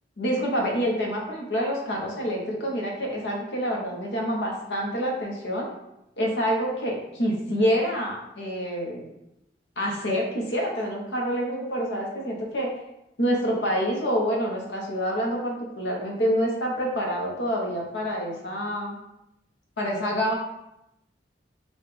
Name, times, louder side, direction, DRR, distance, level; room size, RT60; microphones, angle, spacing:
voice 1, 0.2-5.7 6.2-9.0 9.8-12.7 13.2-19.0 19.8-20.3, equal, 75° left, -1 dB, 1.0 m, -27 dB
6.3 x 2.4 x 3.3 m, 0.87 s
head